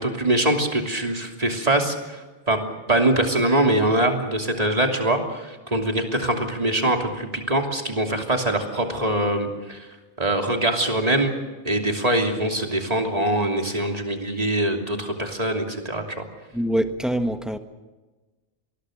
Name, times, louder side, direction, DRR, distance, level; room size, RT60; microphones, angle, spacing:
voice 1, 0.0-2.2 2.5-2.6 2.9-9.9 10.2-11.3 11.6-16.2, right 1 dB, 35° right, 3.1 m, -23 dB
voice 2, 16.5-17.6, equal, ahead, 1.4 m, -24 dB
26.0 x 20.5 x 6.6 m
omnidirectional pair, 1.2 m